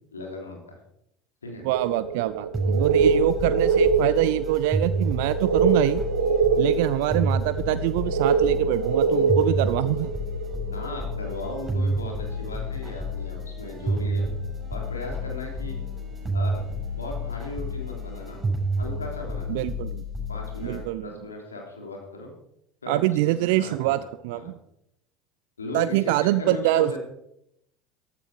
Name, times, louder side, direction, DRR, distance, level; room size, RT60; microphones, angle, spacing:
voice 1, 0.1-0.8 1.4-1.6 10.7-14.2 14.7-15.8 16.3-16.6 16.9-18.4 18.8-19.6 20.3-22.3 22.8-24.0 24.3-24.5 25.6-27.0, left 2 dB, 85° left, 1 dB, 3.1 m, -37 dB
voice 2, 1.6-6.0 6.6-10.1 19.5-20.0 20.6-21.1 22.9-24.0 24.2-24.6 25.7-27.0, right 15 dB, 65° right, 14 dB, 0.5 m, -24 dB
sound 1, 1.7-17.1 18.2-18.3 19.0-19.1, right 5 dB, 80° right, 1.3 m, -25 dB
sound 2, 2.5-20.8, equal, 20° right, 7.3 m, -30 dB
14.5 x 12.5 x 4.8 m, 0.77 s
figure-of-eight pair, 70°, 0 cm